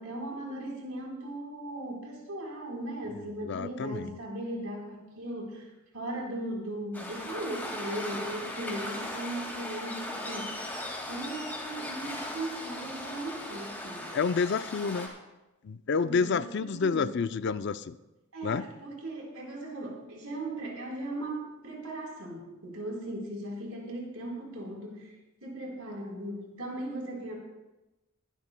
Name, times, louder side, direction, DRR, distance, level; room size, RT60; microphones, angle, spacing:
voice 1, 0.0-10.6 11.1-14.1 16.0-17.1 18.3-25.1 25.4-27.3, right 1 dB, 85° right, -1 dB, 3.8 m, -38 dB
voice 2, 3.4-4.2 14.1-15.2 15.6-18.0 18.4-18.7, left 5 dB, 55° left, 13 dB, 0.4 m, -29 dB
Waves surf, 6.9-15.1, left 1 dB, 10° left, 2.0 m, -38 dB
21.0 x 12.0 x 2.2 m, 1.0 s
head